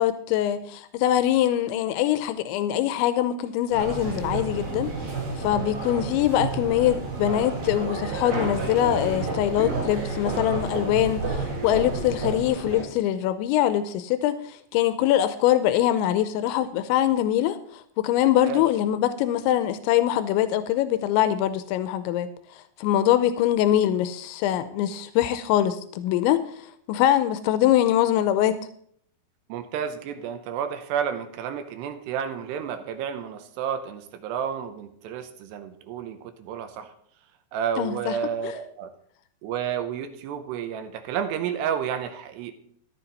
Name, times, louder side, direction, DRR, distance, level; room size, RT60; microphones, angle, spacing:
voice 1, 0.0-4.9 5.4-22.3 22.6-26.4 26.9-28.6 37.8-38.2 38.4-38.5, left 12 dB, 90° left, 12 dB, 3.0 m, -23 dB
sound 1, 3.7-12.8, right 3 dB, 60° right, 5.6 m, -30 dB
voice 2, 29.5-36.9 37.5-38.9 39.4-42.5, right 8 dB, 80° right, 8 dB, 2.8 m, -31 dB
13.5 x 11.5 x 4.1 m, 0.65 s
omnidirectional pair, 5.2 m